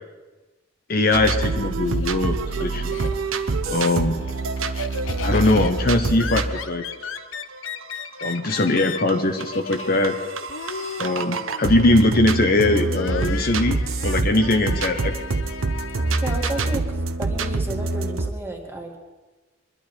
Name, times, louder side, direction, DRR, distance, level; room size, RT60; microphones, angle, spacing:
voice 1, 0.9-3.1 3.7-4.1 5.2-6.8 8.2-10.2 11.0-15.1, left 2 dB, 50° left, 5 dB, 1.0 m, -21 dB
sound 1, 1.1-18.3, right 3 dB, 85° right, 0.9 m, -26 dB
Laughter, 1.4-3.5 3.9-16.8, left 6 dB, 75° left, 0.7 m, -37 dB
voice 2, 16.2-19.0, right 1 dB, 10° right, 0 dB, 1.9 m, -32 dB
22.5 x 11.5 x 4.4 m, 1.2 s
head